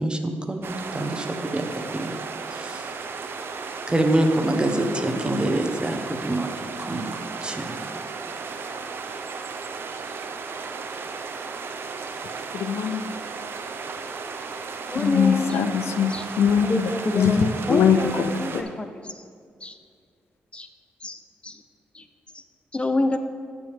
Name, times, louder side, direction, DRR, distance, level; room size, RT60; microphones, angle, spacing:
voice 1, 0.0-2.1 2.5-3.0 3.9-8.1, right 1 dB, 20° right, 1.2 m, -26 dB
sound 1, 0.6-18.6, right 4 dB, 60° right, 0.7 m, -35 dB
voice 2, 12.5-13.0 14.9-18.6, left 7 dB, 80° left, 0.4 m, -22 dB
voice 3, 14.9-15.5 16.1-16.2 16.7-18.9 19.6-19.7 20.5-20.7 21.0-21.6 21.9-22.0 22.7-23.2, left 2 dB, 25° left, 0.6 m, -26 dB
14.0 x 4.9 x 3.6 m
supercardioid pair, 50°, 4 cm